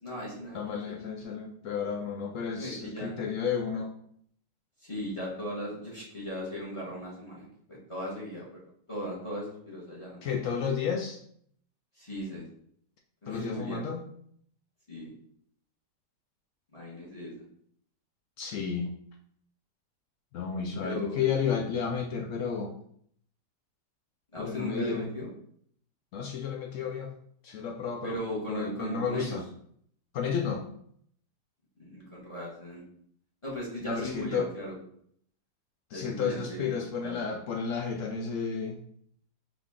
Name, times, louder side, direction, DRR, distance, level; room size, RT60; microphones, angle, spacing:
voice 1, 0.0-0.9 2.6-3.1 4.8-8.6 8.9-10.4 12.0-12.4 13.2-13.8 14.9-15.1 16.7-17.4 20.8-21.2 24.3-25.3 28.0-29.4 31.8-32.8 33.4-34.7 35.9-37.2, equal, 20° left, -4 dB, 1.1 m, -38 dB
voice 2, 0.5-3.9 10.2-11.2 13.3-14.1 18.4-18.9 20.3-22.7 24.4-25.1 26.1-27.1 27.4-28.2 28.5-29.4 30.1-30.7 33.8-34.5 35.9-38.8, left 6 dB, 75° left, 2 dB, 0.7 m, -32 dB
5.0 x 2.7 x 3.6 m, 0.65 s
omnidirectional pair, 1.8 m